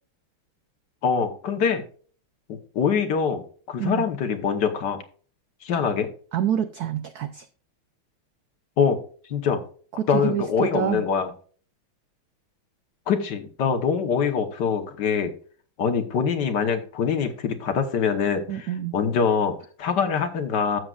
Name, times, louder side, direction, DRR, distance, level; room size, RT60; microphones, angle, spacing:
voice 1, 1.0-1.8 2.5-5.0 5.6-6.1 8.8-9.0 9.3-9.6 10.1-11.3 13.1-15.3 15.8-20.8, left 6 dB, 60° left, 7 dB, 1.5 m, -24 dB
voice 2, 6.3-7.5 10.0-11.1 18.5-19.0, right 10 dB, 80° right, 11 dB, 0.8 m, -27 dB
12.5 x 7.9 x 2.4 m, 0.44 s
omnidirectional pair, 2.3 m